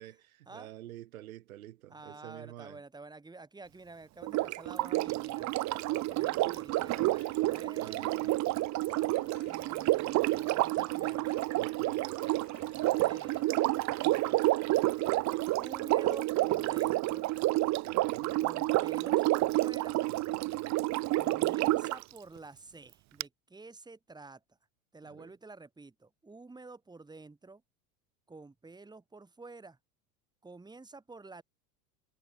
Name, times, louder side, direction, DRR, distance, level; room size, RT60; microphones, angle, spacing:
voice 1, 0.0-2.8 7.8-8.3 11.5-12.5 17.6-18.4 20.1-20.9 25.0-25.3, right 14 dB, 80° right, 3.0 m, -49 dB
voice 2, 1.9-8.4 9.4-11.5 12.7-13.4 14.0-14.5 15.5-17.3 18.4-20.0 21.1-24.4 24.9-27.6 28.3-29.8 30.4-31.4, right 3 dB, 10° right, 3.2 m, -50 dB
Sink (filling or washing), 4.2-22.0 23.2-23.3, right 19 dB, 40° right, 1.1 m, -29 dB
sound 1, 6.7-17.0, left 10 dB, 35° left, 6.4 m, -60 dB
hypercardioid pair, 105°, 41 cm